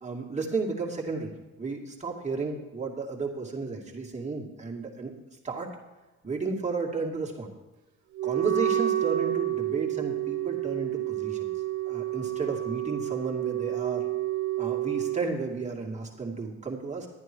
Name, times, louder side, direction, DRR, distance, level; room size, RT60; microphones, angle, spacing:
voice 1, 0.0-1.3 1.6-5.1 5.4-5.7 6.2-7.5 8.2-11.5 11.9-14.0 14.6-17.1, right 4 dB, 25° right, -1 dB, 2.5 m, -33 dB
Wind instrument woodwind instrument, 8.2-15.2, right 13 dB, 70° right, 0.8 m, -29 dB
11.5 x 9.7 x 4.6 m, 1.1 s
cardioid pair, 90°, 30 cm